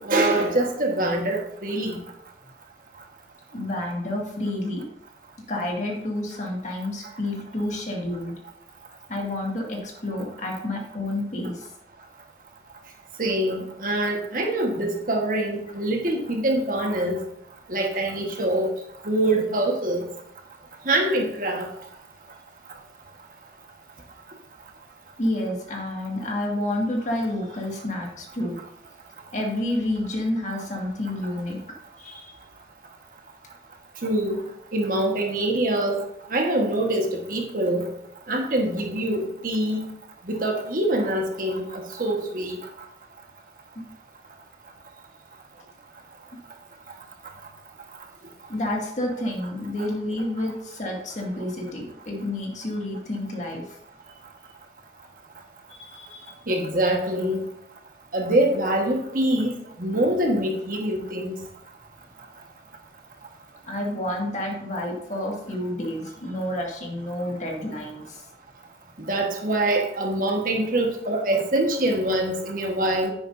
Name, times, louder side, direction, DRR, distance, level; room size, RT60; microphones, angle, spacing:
voice 1, 0.0-2.0 13.2-17.2 17.7-18.7 19.0-20.0 20.8-21.7 34.0-34.4 34.7-36.0 36.3-37.8 38.3-39.9 40.3-42.6 49.8-49.9 56.5-57.4 58.1-61.4 69.1-73.1, right 1 dB, 50° right, 2 dB, 1.5 m, -24 dB
voice 2, 3.5-4.8 5.5-8.3 9.1-11.7 25.2-28.6 29.3-31.6 32.0-32.4 43.8-43.9 48.5-53.8 55.7-56.4 63.7-68.2, left 1 dB, 45° left, -1 dB, 2.1 m, -29 dB
10.5 x 9.5 x 2.7 m, 0.75 s
head